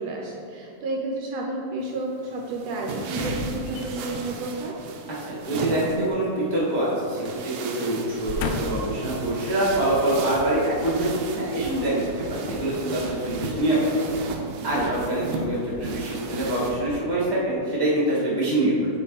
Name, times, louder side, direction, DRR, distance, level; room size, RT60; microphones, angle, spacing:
voice 1, 0.0-4.8 11.6-12.0 14.7-15.0, right 2 dB, 75° right, -1 dB, 1.7 m, -31 dB
sound 1, 1.8-16.7, right 4 dB, 90° right, 2.1 m, -35 dB
sound 2, 3.1-4.3 5.8-7.0 7.3-7.5 8.1-9.0 9.7-9.8, left 4 dB, 90° left, 1.3 m, -34 dB
voice 2, 5.2-11.9 12.3-13.9 14.6-18.9, right 1 dB, 10° left, -7 dB, 1.1 m, -25 dB
sound 3, 8.9-16.9, left 2 dB, 60° left, 1.1 m, -42 dB
7.8 x 4.9 x 4.1 m, 2.4 s
omnidirectional pair, 3.3 m